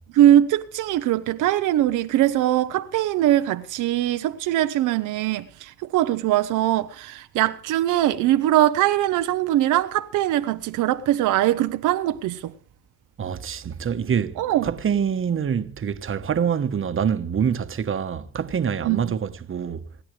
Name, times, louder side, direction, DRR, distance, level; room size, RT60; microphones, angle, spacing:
voice 1, 0.1-12.5 14.4-14.7 18.8-19.1, right 13 dB, 90° right, 0.8 m, -21 dB
voice 2, 13.2-14.3 14.6-19.8, right 7 dB, 45° right, 1.2 m, -25 dB
27.5 x 10.5 x 3.3 m
cardioid pair, 90°, 30 cm